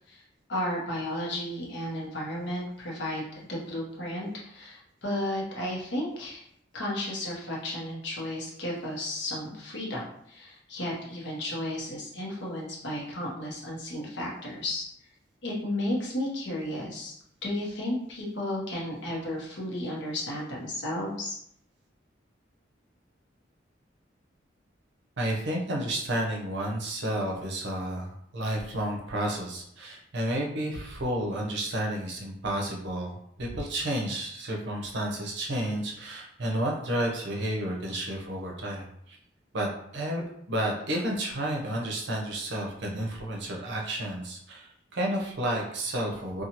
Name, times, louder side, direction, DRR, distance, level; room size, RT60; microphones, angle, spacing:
voice 1, 0.5-3.2 3.5-6.4 6.7-14.8 15.4-17.1 17.4-21.3, left 1 dB, 65° left, -3 dB, 0.9 m, -33 dB
voice 2, 25.2-39.2 39.5-46.4, right 1 dB, 65° right, -1 dB, 0.7 m, -31 dB
2.7 x 2.3 x 2.8 m, 0.71 s
head